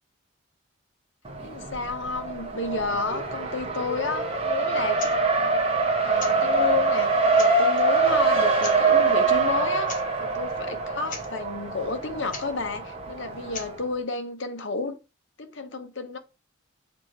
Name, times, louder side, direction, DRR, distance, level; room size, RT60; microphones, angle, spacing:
Race car auto racing, 1.3-13.9, right 3 dB, 30° right, 1.4 m, -24 dB
voice 1, 1.4-5.1 6.0-15.0 15.4-16.2, left 4 dB, 60° left, 1.0 m, -31 dB
sound 1, 4.9-5.2 6.1-6.4 7.0-7.1 7.3-7.8 8.6-8.8 9.8-10.0 10.3-10.4 10.8-10.9 11.0-11.3 12.3-12.5 13.5-13.7, left 5 dB, 40° left, 1.7 m, -38 dB
7.0 x 3.5 x 4.5 m
head